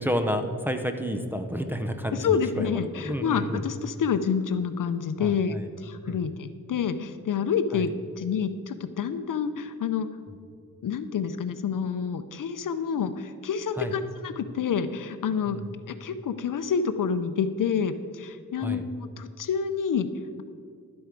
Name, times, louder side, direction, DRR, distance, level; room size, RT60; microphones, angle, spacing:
voice 1, 0.0-3.6 5.2-5.7 6.1-6.2 7.7-7.9 13.8-13.9 15.5-15.6 18.6-18.8, equal, 5° right, 5 dB, 0.6 m, -30 dB
voice 2, 2.1-7.9 8.2-10.1 10.8-20.1, left 6 dB, 65° left, 11 dB, 0.6 m, -28 dB
11.5 x 7.9 x 5.1 m, 2.3 s
wide cardioid pair, 130°, 35 cm